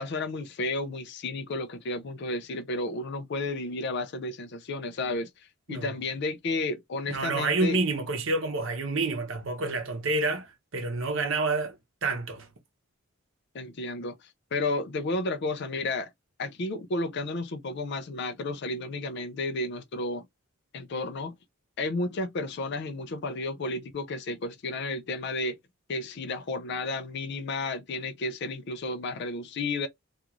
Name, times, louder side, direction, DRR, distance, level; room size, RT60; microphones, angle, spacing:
voice 1, 0.0-5.3 5.7-7.8 13.5-14.2 14.5-16.1 16.4-20.3 20.7-21.4 21.8-25.6 25.9-29.9, left 2 dB, 50° left, 0.4 m, -32 dB
voice 2, 7.1-12.5, right 3 dB, 60° right, 0.8 m, -28 dB
3.0 x 2.4 x 2.4 m
head